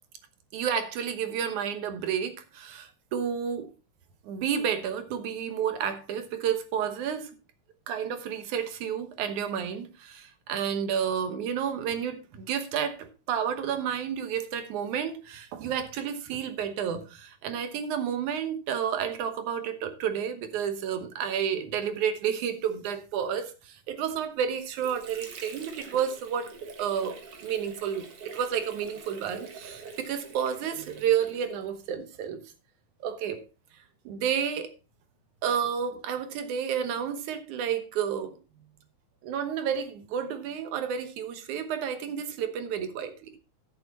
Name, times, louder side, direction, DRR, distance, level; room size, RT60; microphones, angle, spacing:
voice 1, 0.5-3.7 4.2-7.3 7.9-28.1 28.3-32.4 33.0-33.4 34.1-34.7 35.4-38.4 39.2-43.4, right 8 dB, 85° right, 2.6 m, -31 dB
Water / Sink (filling or washing), 24.3-31.9, right 4 dB, 55° right, 2.4 m, -46 dB
13.0 x 7.1 x 4.0 m
omnidirectional pair, 3.3 m